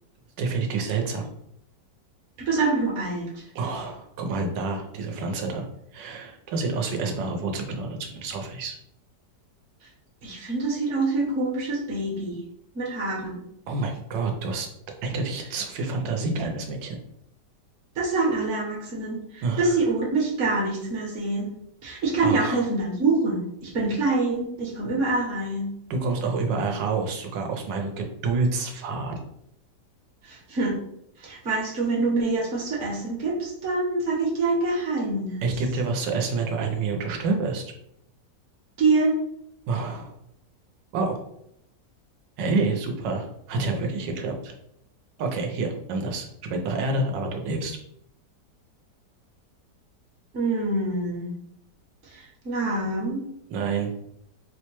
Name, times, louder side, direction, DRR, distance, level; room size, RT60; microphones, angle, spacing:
voice 1, 0.4-1.3 3.5-5.7 5.9-8.8 13.7-14.7 15.0-17.0 19.4-19.8 22.2-22.6 25.9-29.2 35.4-37.7 39.7-40.1 40.9-41.2 42.4-44.5 45.2-47.8 53.5-53.9, right 3 dB, 85° right, 2 dB, 1.4 m, -28 dB
voice 2, 2.4-3.3 10.2-12.4 12.7-13.4 17.9-21.5 21.8-25.7 30.2-30.7 31.2-35.4 38.8-39.1 50.3-51.3 52.1-53.2, right 3 dB, 50° right, -2 dB, 1.1 m, -25 dB
4.4 x 2.2 x 3.0 m, 0.76 s
omnidirectional pair, 1.9 m